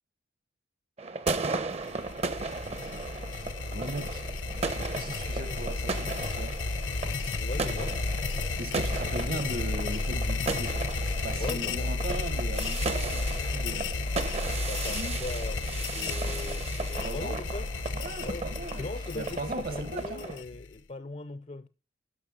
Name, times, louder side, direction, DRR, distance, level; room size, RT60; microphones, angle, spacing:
sound 1, 1.0-20.4, right 3 dB, 35° right, 0.8 m, -36 dB
sound 2, 1.7-20.8, left 3 dB, 85° left, 0.8 m, -33 dB
voice 1, 3.3-4.2 4.5-6.6 8.6-10.8 11.2-13.9 14.9-15.2 17.0-17.4 17.9-18.9 19.1-20.3, right 1 dB, 50° right, 1.2 m, -38 dB
voice 2, 7.4-8.0 11.3-11.9 14.7-17.7 18.2-18.5 18.8-21.7, left 2 dB, 35° left, 0.5 m, -39 dB
11.0 x 6.0 x 4.9 m
head